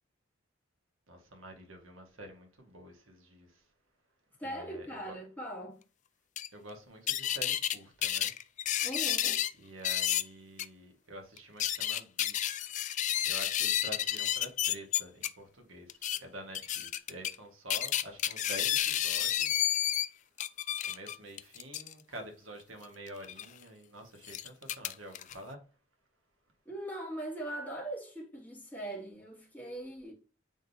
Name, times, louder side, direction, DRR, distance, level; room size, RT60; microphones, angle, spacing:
voice 1, 1.1-3.6 4.4-5.1 6.5-8.3 9.6-12.7 13.2-19.7 20.9-25.6, right 1 dB, 85° right, 1.7 m, -48 dB
voice 2, 4.4-5.8 8.8-9.4 26.7-30.1, right 1 dB, 10° left, 2.3 m, -40 dB
sound 1, 6.4-6.5 7.1-7.8 8.0-9.5 9.8-10.2 10.6-10.7 11.4-15.3 15.9-16.2 16.5-17.4 17.7-20.1 20.4-21.9 23.2-23.5 24.2-25.3, left 11 dB, 40° left, 0.3 m, -31 dB
8.9 x 3.9 x 2.8 m
head